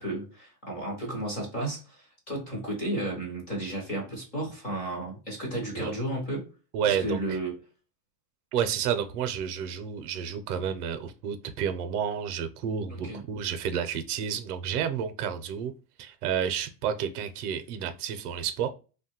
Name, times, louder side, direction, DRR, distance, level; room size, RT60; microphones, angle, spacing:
voice 1, 0.0-6.5 6.8-7.5 12.9-13.2, right 1 dB, 20° left, 0.5 m, -33 dB
voice 2, 6.7-7.4 8.5-15.7 16.0-18.7, right 8 dB, 70° right, 0.6 m, -30 dB
3.0 x 2.2 x 2.8 m
supercardioid pair, 165°, 48 cm